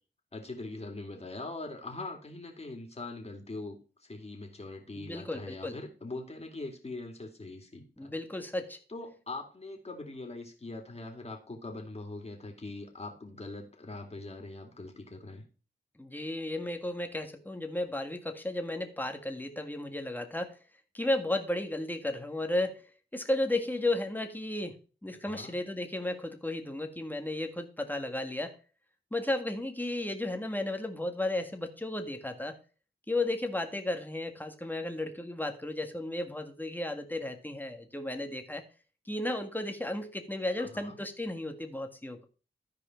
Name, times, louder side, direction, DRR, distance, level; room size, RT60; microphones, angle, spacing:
voice 1, 0.3-8.1 8.9-15.4 25.2-25.5 40.6-41.0, left 2 dB, 30° left, 2 dB, 2.7 m, -42 dB
voice 2, 5.0-5.8 8.0-8.8 16.0-20.6 20.9-22.9 23.1-24.8 25.0-28.5 29.1-32.6 33.1-38.6 39.1-42.2, left 1 dB, 10° left, 6 dB, 1.7 m, -34 dB
13.5 x 4.9 x 4.5 m, 0.37 s
cardioid pair, 60°, 20 cm